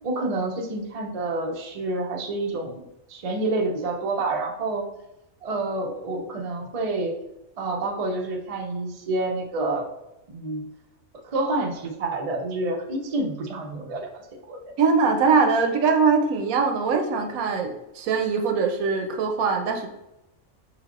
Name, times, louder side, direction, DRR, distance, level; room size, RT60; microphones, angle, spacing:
voice 1, 0.0-2.8 3.1-4.9 5.4-7.1 7.6-9.9 10.3-10.7 11.2-14.2 14.5-14.6, right 2 dB, 50° right, 1 dB, 0.4 m, -28 dB
voice 2, 14.8-19.9, right 5 dB, 85° right, 5 dB, 1.1 m, -22 dB
4.8 x 3.3 x 2.5 m, 0.91 s
omnidirectional pair, 1.4 m